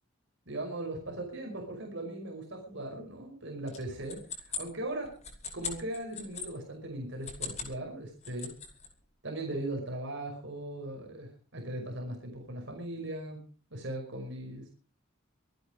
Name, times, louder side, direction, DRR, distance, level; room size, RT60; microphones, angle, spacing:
voice 1, 0.5-5.2 5.5-8.5 9.2-14.7, right 1 dB, 60° right, 1 dB, 5.3 m, -39 dB
sound 1, 3.7-6.5 7.1-7.8 8.1-8.9, left 6 dB, 35° left, 5.3 m, -40 dB
25.5 x 9.8 x 5.0 m, 0.38 s
head